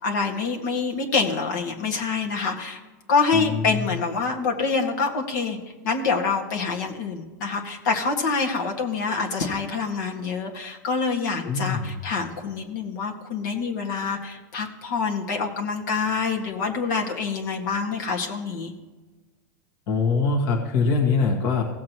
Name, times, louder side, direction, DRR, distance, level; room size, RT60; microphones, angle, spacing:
voice 1, 0.0-2.8 3.1-5.6 5.8-18.7, left 4 dB, 65° left, 1 dB, 1.9 m, -26 dB
voice 2, 3.3-4.0 11.4-12.0 19.9-21.6, left 4 dB, 50° left, 1 dB, 1.7 m, -23 dB
17.0 x 7.5 x 3.0 m, 1.3 s
supercardioid pair, 150°, 10 cm